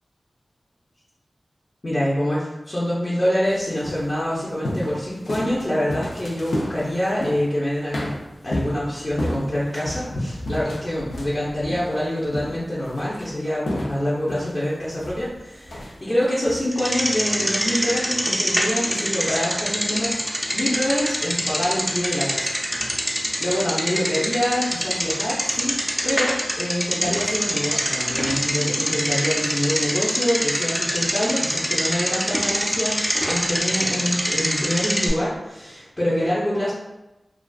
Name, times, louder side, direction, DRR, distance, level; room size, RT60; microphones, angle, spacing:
voice 1, 1.8-8.1 8.4-20.2 20.5-25.8 26.0-36.7, left 1 dB, 40° left, -9 dB, 0.7 m, -26 dB
sound 1, 3.5-7.6 7.9-16.7, left 1 dB, 90° left, 0.4 m, -32 dB
Bicycle, 16.7-35.1, equal, ahead, 0.5 m, -25 dB
2.4 x 2.4 x 2.3 m, 0.98 s
cardioid pair, 40°, 0 cm